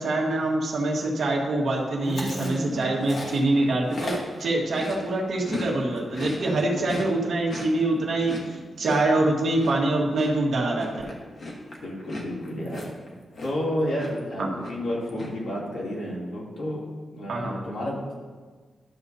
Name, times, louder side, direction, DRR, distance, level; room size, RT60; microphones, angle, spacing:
voice 1, 0.0-4.1 4.4-11.1 14.4-14.5 17.3-17.5, right 2 dB, 65° right, -2 dB, 1.5 m, -25 dB
voice 2, 2.0-3.0 6.4-6.9 11.7-12.8 13.4-18.1, equal, 80° left, -6 dB, 2.8 m, -31 dB
Chewing mastication, 2.0-5.7 6.0-13.7 14.0-14.3 14.6-15.3, left 2 dB, 40° left, 1.2 m, -37 dB
12.0 x 7.0 x 2.7 m, 1.4 s
wide cardioid pair, 180°, 0 cm